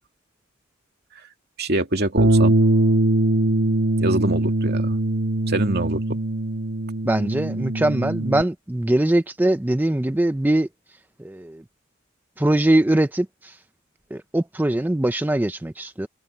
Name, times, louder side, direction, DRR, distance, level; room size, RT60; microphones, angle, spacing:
voice 1, 1.6-2.6 4.0-5.0 5.5-6.2, right 2 dB, 50° right, 2.4 m, -25 dB
Bass guitar, 2.2-8.4, right 1 dB, 75° right, 2.7 m, -21 dB
voice 2, 7.0-10.7 11.2-11.6 12.4-13.6 14.1-16.1, right 1 dB, 10° right, 0.4 m, -22 dB
head